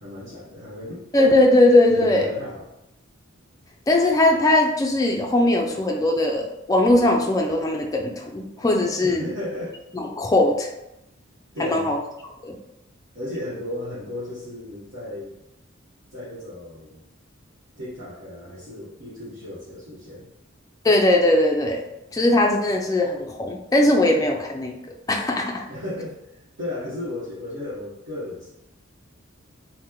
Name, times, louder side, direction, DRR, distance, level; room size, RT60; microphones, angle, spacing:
voice 1, 0.0-1.0 1.9-2.6 9.0-9.8 11.5-12.0 13.1-15.3 16.1-17.0 17.8-20.3 25.7-28.5, left 1 dB, 80° right, -11 dB, 0.9 m, -34 dB
voice 2, 1.1-2.3 3.9-9.2 9.9-10.7 11.6-12.0 12.4-12.5 20.8-21.8 22.1-24.8 25.1-25.6, left 1 dB, 15° left, 1 dB, 0.3 m, -19 dB
2.9 x 2.1 x 3.6 m, 0.88 s
head